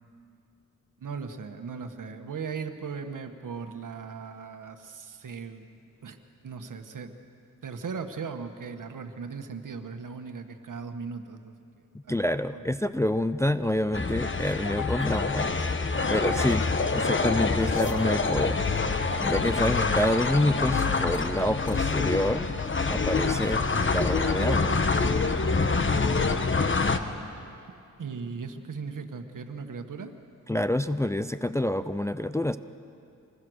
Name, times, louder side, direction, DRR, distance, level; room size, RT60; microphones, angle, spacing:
voice 1, 1.0-5.7 6.0-7.1 7.6-11.5 12.0-12.2 12.5-12.6 28.0-30.2, right 5 dB, 65° right, 7 dB, 1.6 m, -38 dB
voice 2, 11.9-15.5 16.1-16.7 16.9-22.5 22.9-24.8 30.5-32.6, left 1 dB, 10° left, 11 dB, 0.5 m, -27 dB
sound 1, 12.6-25.0, left 6 dB, 65° left, 1.3 m, -43 dB
sound 2, 13.9-27.0, left 4 dB, 35° left, 1.2 m, -26 dB
26.0 x 20.0 x 6.5 m, 2.6 s
cardioid pair, 85°, 34 cm